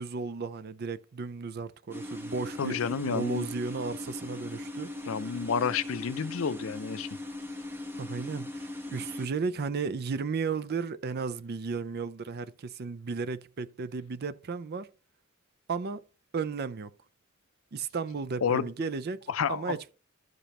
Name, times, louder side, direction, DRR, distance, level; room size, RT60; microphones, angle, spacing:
voice 1, 0.0-4.9 5.2-5.4 8.0-14.9 15.7-16.0 16.3-16.9 17.7-19.2 19.5-19.9, right 4 dB, 50° right, 0.5 m, -34 dB
sound 1, 1.9-9.3, left 1 dB, 10° right, 1.0 m, -39 dB
voice 2, 2.6-3.5 5.1-7.1 18.4-18.7 19.3-19.8, left 6 dB, 75° left, 0.5 m, -30 dB
12.5 x 5.1 x 2.9 m
head